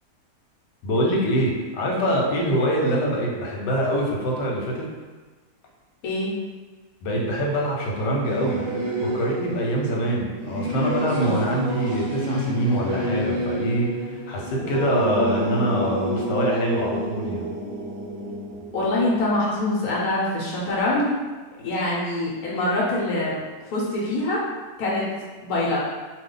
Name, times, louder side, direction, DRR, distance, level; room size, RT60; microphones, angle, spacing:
voice 1, 0.8-4.9 7.0-8.6 9.0-17.4, equal, 90° left, -2 dB, 1.3 m, -24 dB
Singing / Musical instrument, 8.2-20.1, right 1 dB, 50° right, 0.7 m, -29 dB
voice 2, 18.7-21.1 21.6-23.4 23.7-24.4 24.8-25.0 25.4-25.8, left 2 dB, 65° left, -5 dB, 1.1 m, -24 dB
2.6 x 2.3 x 3.7 m, 1.3 s
omnidirectional pair, 1.8 m